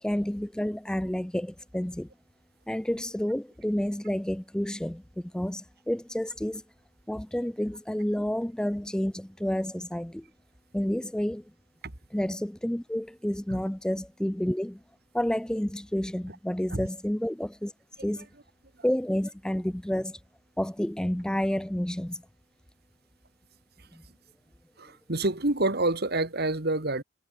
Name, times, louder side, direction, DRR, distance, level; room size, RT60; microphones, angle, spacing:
voice 1, 0.0-2.1 2.7-6.6 7.1-10.3 10.7-11.4 12.1-14.8 15.1-17.7 18.0-18.3 18.8-20.2 20.6-22.2 23.9-24.0, equal, 5° left, 0.3 m, -30 dB
voice 2, 24.8-27.0, right 2 dB, 50° right, 2.1 m, -27 dB
head